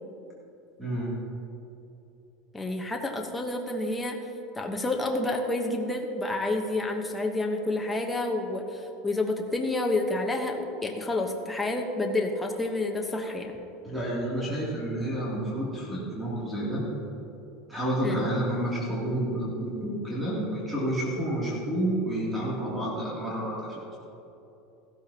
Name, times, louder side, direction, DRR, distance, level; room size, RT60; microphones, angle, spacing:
voice 1, 2.5-4.2 4.5-13.5 18.0-18.2, left 2 dB, 10° left, 2 dB, 1.0 m, -29 dB
voice 2, 13.8-16.8 17.7-24.0, right 1 dB, 10° right, -6 dB, 2.7 m, -30 dB
15.0 x 13.0 x 2.8 m, 2.9 s
supercardioid pair, 145°, 0 cm